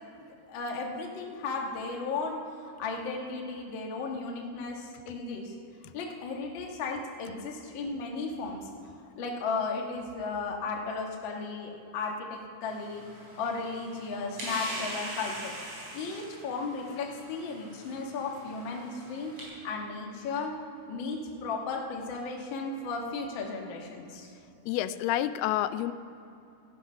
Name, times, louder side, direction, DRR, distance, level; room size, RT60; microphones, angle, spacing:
voice 1, 0.5-5.5 5.9-8.7 9.2-13.0 13.4-15.5 15.9-19.3 19.6-20.5 20.9-24.3, left 4 dB, 60° left, 0 dB, 1.3 m, -35 dB
sound 1, 12.6-19.4, right 1 dB, 35° right, 4.9 m, -42 dB
voice 2, 24.7-25.9, left 13 dB, 85° left, 12 dB, 2.5 m, -28 dB
16.5 x 12.0 x 5.5 m, 2.7 s
omnidirectional pair, 4.5 m